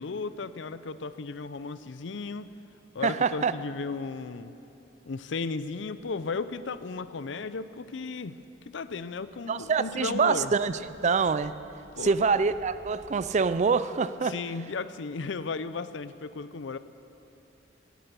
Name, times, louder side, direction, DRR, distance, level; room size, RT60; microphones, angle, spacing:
voice 1, 0.0-2.5 2.9-4.5 5.1-10.5 12.0-12.1 14.2-16.8, left 4 dB, 70° left, 14 dB, 0.5 m, -35 dB
voice 2, 3.0-3.5 9.5-11.5 12.0-14.3, right 5 dB, 40° right, 14 dB, 0.4 m, -25 dB
sound 1, 6.4-6.8 7.4-7.6 7.8-13.4, equal, ahead, 3.2 m, -57 dB
17.0 x 11.5 x 6.9 m, 2.8 s
head